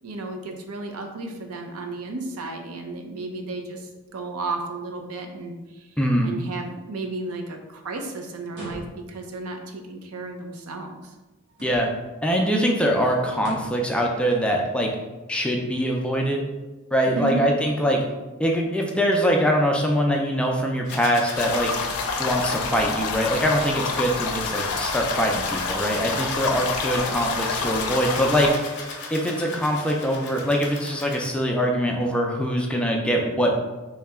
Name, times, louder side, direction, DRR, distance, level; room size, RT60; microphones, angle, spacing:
voice 1, 0.0-5.9 6.2-11.0 17.1-17.4, right 2 dB, 80° right, 4 dB, 0.5 m, -33 dB
voice 2, 6.0-6.3 11.6-11.9 12.2-14.9 15.3-16.4 16.9-18.0 18.4-21.7 22.2-28.5 29.1-33.5, equal, 5° left, 0 dB, 0.4 m, -23 dB
sound 1, 8.5-9.3 11.5-12.1 13.4-13.9, equal, 55° right, 1.1 m, -40 dB
sound 2, 20.8-31.3, left 3 dB, 55° left, 0.7 m, -37 dB
sound 3, 21.3-28.6, left 4 dB, 90° left, 0.4 m, -28 dB
3.1 x 2.8 x 3.5 m, 1.1 s
head